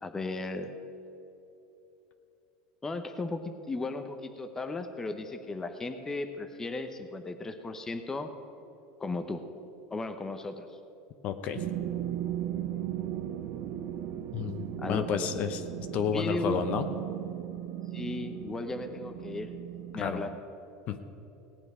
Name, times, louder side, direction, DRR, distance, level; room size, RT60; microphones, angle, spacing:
voice 1, 0.0-0.7 2.8-8.3 9.0-9.4 9.9-10.7 14.8-15.3 16.1-16.7 17.9-19.5 19.9-20.3, left 3 dB, 15° left, 7 dB, 0.8 m, -35 dB
voice 2, 11.2-11.6 14.3-15.6 15.9-16.9 20.0-20.2 20.9-21.0, left 7 dB, 45° left, 9 dB, 0.8 m, -31 dB
sound 1, 11.6-20.4, right 12 dB, 55° right, 0.7 m, -37 dB
17.5 x 8.9 x 4.9 m, 3.0 s
supercardioid pair, 130°, 3 cm